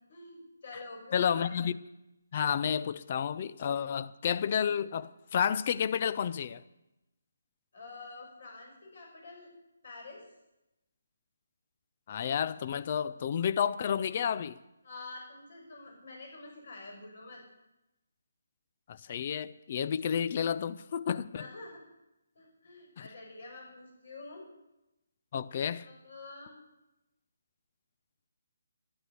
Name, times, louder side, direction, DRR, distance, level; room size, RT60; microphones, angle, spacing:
voice 1, 0.1-1.5 7.7-9.5 9.8-10.2 14.8-17.4 21.4-21.8 22.4-24.5 25.8-26.6, left 3 dB, 55° left, 6.1 m, -47 dB
voice 2, 1.1-1.8 2.3-6.6 12.1-14.6 18.9-21.5 25.3-25.9, left 8 dB, 40° left, 0.6 m, -31 dB
12.0 x 11.0 x 8.2 m
figure-of-eight pair, 145°, 0 cm